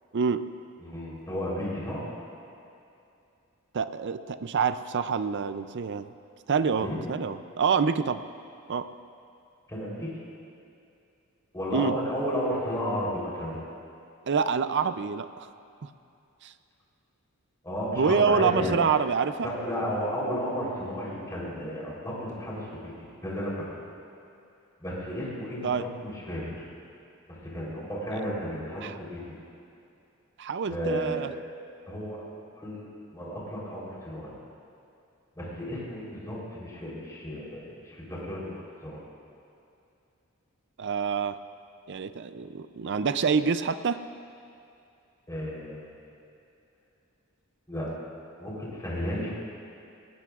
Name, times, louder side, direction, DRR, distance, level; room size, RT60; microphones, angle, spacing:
voice 1, 0.1-0.4 3.7-6.1 6.5-8.2 8.7-8.9 11.7-12.0 14.3-15.5 16.4-16.5 17.9-19.5 25.6-25.9 28.8-29.0 30.4-31.3 40.8-41.4 41.9-44.0, right 5 dB, 55° right, 12 dB, 0.5 m, -26 dB
voice 2, 0.8-2.1 6.8-7.0 9.7-10.1 11.5-13.6 17.6-18.8 19.4-22.9 23.2-23.6 24.8-26.5 27.3-29.2 30.7-31.3 31.9-32.9 33.1-34.3 35.4-39.0 45.3-45.9 47.7-47.9 48.4-49.3, equal, 15° left, -6 dB, 3.7 m, -33 dB
20.0 x 17.5 x 2.5 m, 2.7 s
head